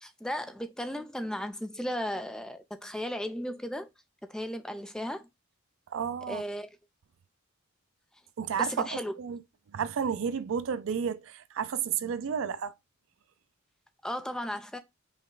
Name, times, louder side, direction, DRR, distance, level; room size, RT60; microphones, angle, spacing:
voice 1, 0.0-3.9 4.3-5.3 6.3-6.7 8.6-9.1 14.0-14.8, equal, 5° left, 0.4 m, -35 dB
voice 2, 5.9-6.4 8.4-9.4 9.7-12.7, right 7 dB, 65° right, 0.4 m, -31 dB
5.1 x 2.2 x 3.8 m
head